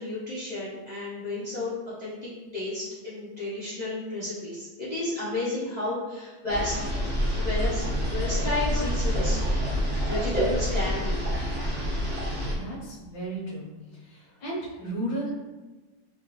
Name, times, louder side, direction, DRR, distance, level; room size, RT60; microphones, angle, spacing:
voice 1, 0.0-1.7 2.0-2.2 2.5-6.8 7.4-9.4 10.0-11.3, left 2 dB, 35° left, -10 dB, 0.7 m, -32 dB
sound 1, 6.5-12.5, equal, 10° right, 0.6 m, -27 dB
voice 2, 12.5-13.7 14.0-15.3, right 1 dB, 80° left, -7 dB, 1.7 m, -34 dB
3.7 x 3.0 x 3.0 m, 1.2 s
omnidirectional pair, 1.9 m